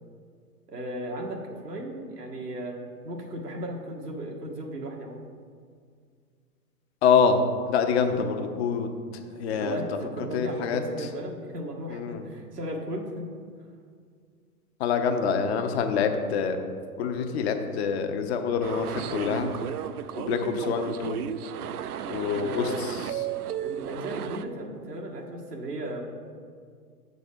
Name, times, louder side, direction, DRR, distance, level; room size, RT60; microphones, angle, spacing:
voice 1, 0.7-5.3 9.2-13.3 22.3-22.9 23.6-26.0, right 1 dB, 90° right, 0 dB, 1.4 m, -36 dB
voice 2, 7.0-8.9 9.4-9.8 10.3-10.8 11.9-12.2 14.8-16.6 17.0-19.5 20.1-21.2 22.1-23.0, left 6 dB, 45° left, 6 dB, 0.8 m, -26 dB
sound 1, 18.6-24.4, right 9 dB, 75° right, 0.5 m, -34 dB
7.0 x 4.1 x 6.6 m, 2.1 s
hypercardioid pair, 115°, 46 cm